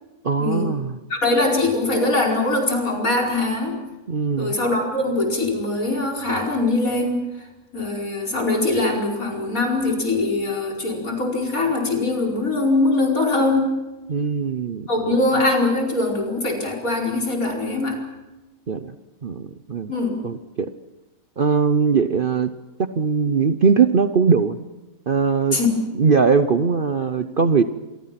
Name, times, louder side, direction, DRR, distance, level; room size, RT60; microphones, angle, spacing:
voice 1, 0.2-1.0 4.1-4.6 14.1-15.2 18.7-18.9 19.2-19.9 20.2-20.7 21.4-22.5 22.8-24.6 25.1-25.6 25.9-27.6, right 5 dB, 45° right, 10 dB, 0.9 m, -20 dB
voice 2, 1.1-3.8 4.4-7.2 7.7-13.8 14.9-18.0 19.9-20.2 25.5-25.8 27.2-27.3, left 2 dB, 65° left, 0 dB, 5.4 m, -22 dB
27.5 x 23.0 x 5.9 m, 1.1 s
omnidirectional pair, 1.6 m